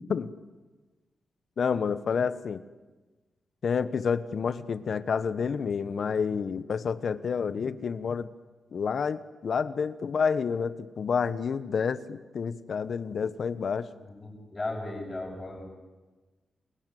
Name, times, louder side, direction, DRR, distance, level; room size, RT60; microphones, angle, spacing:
voice 1, 1.6-2.6 3.6-8.3 8.7-13.9, left 6 dB, 65° left, 14 dB, 1.3 m, -29 dB
voice 2, 14.0-15.6, left 2 dB, 30° left, -5 dB, 6.9 m, -36 dB
29.5 x 21.0 x 9.4 m, 1.2 s
cardioid pair, 100°, 0 cm